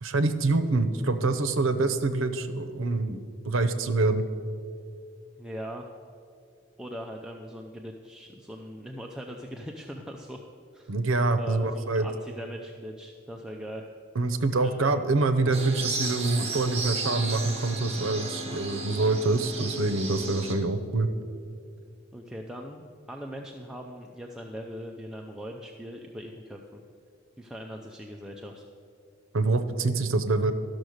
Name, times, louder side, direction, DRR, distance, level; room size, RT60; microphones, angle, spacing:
voice 1, 0.0-4.2 10.9-12.1 14.2-21.1 29.3-30.5, right 3 dB, 80° right, 10 dB, 0.7 m, -26 dB
voice 2, 5.4-5.9 6.8-10.4 10.7-10.9 11.3-13.9 14.6-15.8 22.1-26.8 27.4-28.7, equal, 5° right, 0 dB, 0.5 m, -41 dB
sound 1, 15.5-20.5, right 3 dB, 30° right, 1.4 m, -34 dB
12.0 x 6.3 x 6.4 m, 2.3 s
head